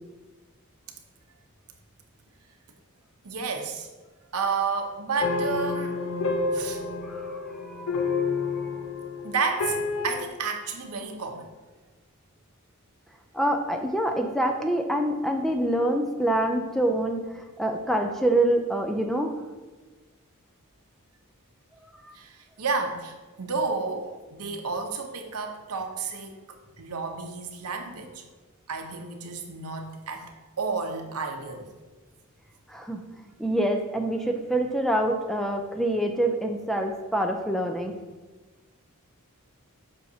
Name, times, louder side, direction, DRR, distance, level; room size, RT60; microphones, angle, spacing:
voice 1, 3.2-3.9 4.3-6.0 6.5-6.8 9.2-11.5 22.1-26.4 26.8-28.2 28.7-30.3 30.6-31.7, right 4 dB, 80° right, 4 dB, 0.8 m, -31 dB
sound 1, 5.2-10.2, left 4 dB, 65° left, 0.5 m, -29 dB
voice 2, 7.0-7.9 8.6-8.7 13.3-19.3 22.0-22.1 32.7-33.0 33.4-38.0, right 1 dB, ahead, 4 dB, 0.4 m, -26 dB
7.8 x 5.7 x 2.8 m, 1.2 s
head